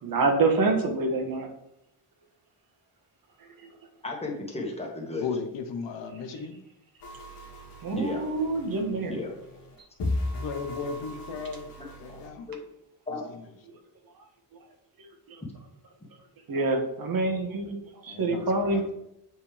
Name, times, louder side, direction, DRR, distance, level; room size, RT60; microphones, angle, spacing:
voice 1, 0.0-1.5 3.6-3.7 7.8-9.2 15.3-15.4 16.5-17.8 18.0-18.8, right 3 dB, 55° right, 3 dB, 1.5 m, -26 dB
voice 2, 4.0-5.3 7.9-8.2 9.1-9.3 11.8-12.2 12.5-12.6 13.1-13.2, left 2 dB, 15° left, -1 dB, 1.8 m, -34 dB
voice 3, 5.2-6.6 10.3-11.7 12.0-12.5 13.3-13.4 18.1-18.9, left 5 dB, 85° left, 7 dB, 1.1 m, -35 dB
sound 1, 7.0-12.3, left 2 dB, 70° left, 1.8 m, -37 dB
7.6 x 5.6 x 3.4 m, 0.81 s
cardioid pair, 135°, 42 cm